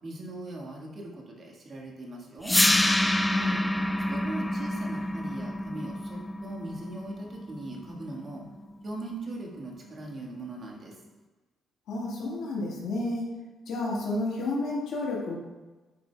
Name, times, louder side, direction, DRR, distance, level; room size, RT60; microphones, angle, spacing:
voice 1, 0.0-2.6 4.1-8.4 8.8-10.9, right 2 dB, 45° right, -1 dB, 1.5 m, -40 dB
sound 1, 2.4-8.5, left 1 dB, 10° left, 0.4 m, -27 dB
voice 2, 3.2-3.6 11.9-13.3 13.7-15.4, left 2 dB, 75° left, -3 dB, 1.6 m, -31 dB
9.4 x 5.0 x 2.2 m, 1.2 s
cardioid pair, 90°, 0 cm